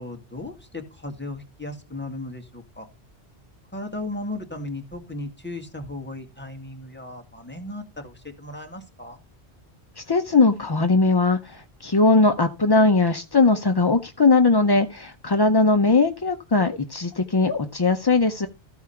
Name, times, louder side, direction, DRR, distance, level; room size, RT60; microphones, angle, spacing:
voice 1, 0.0-2.9 3.7-9.2, left 2 dB, 10° left, 3 dB, 1.9 m, -36 dB
voice 2, 10.0-18.5, left 3 dB, 30° left, 7 dB, 0.5 m, -20 dB
14.0 x 4.8 x 5.7 m, 0.28 s
omnidirectional pair, 1.1 m